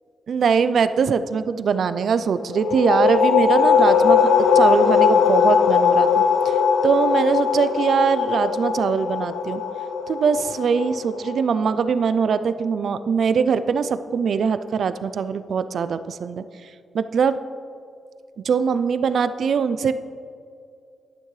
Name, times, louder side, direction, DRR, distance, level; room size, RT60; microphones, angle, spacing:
voice 1, 0.3-4.3 4.5-6.5 6.8-9.6 10.1-16.4 16.9-17.4 18.4-19.9, right 6 dB, 55° right, 12 dB, 0.3 m, -22 dB
sound 1, 2.5-11.9, left 6 dB, 80° left, 0.5 m, -19 dB
11.5 x 10.0 x 3.2 m, 2.4 s
wide cardioid pair, 180°, 0 cm